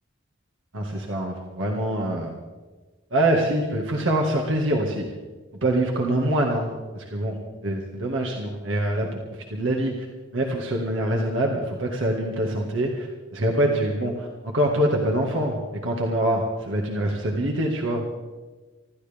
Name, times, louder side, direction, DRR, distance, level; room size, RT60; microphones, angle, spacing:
voice 1, 0.7-2.3 3.1-5.1 5.6-7.4 7.6-9.1 9.5-10.1 10.3-18.0, right 1 dB, 85° right, -1 dB, 1.9 m, -24 dB
25.5 x 13.5 x 3.6 m, 1.3 s
head